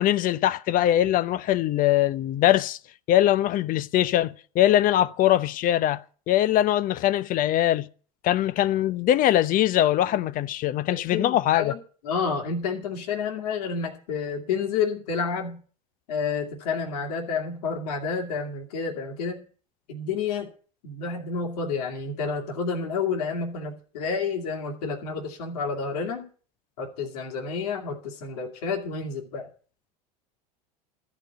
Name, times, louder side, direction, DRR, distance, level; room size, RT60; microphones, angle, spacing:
voice 1, 0.0-2.8 3.1-6.0 6.3-7.9 8.2-11.7, left 12 dB, 45° left, 0.7 m, -22 dB
voice 2, 10.9-15.6 16.1-19.4 19.9-20.5 20.8-26.3 26.8-29.5, left 5 dB, 75° left, 2.5 m, -30 dB
14.0 x 5.2 x 9.1 m
hypercardioid pair, 95°, 20 cm